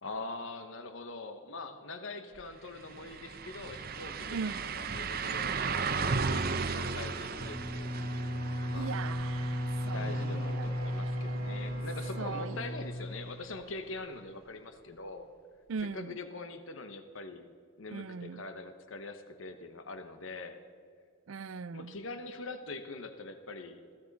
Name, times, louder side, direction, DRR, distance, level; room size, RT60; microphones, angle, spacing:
voice 1, 0.0-9.0 9.9-15.3 15.9-17.5 17.8-20.6 21.7-23.8, left 3 dB, 70° left, 8 dB, 1.0 m, -43 dB
sound 1, 2.4-2.5 2.8-12.6 12.9-13.0 15.8-15.9, right 4 dB, 45° right, 0.7 m, -36 dB
voice 2, 4.3-4.6 8.7-11.8 12.1-12.6 15.7-16.2 17.9-18.4 21.3-21.9, right 5 dB, 75° right, 18 dB, 0.5 m, -40 dB
Bowed string instrument, 7.3-13.4, equal, 40° left, 4.2 m, -35 dB
21.0 x 15.5 x 4.1 m, 2.2 s
head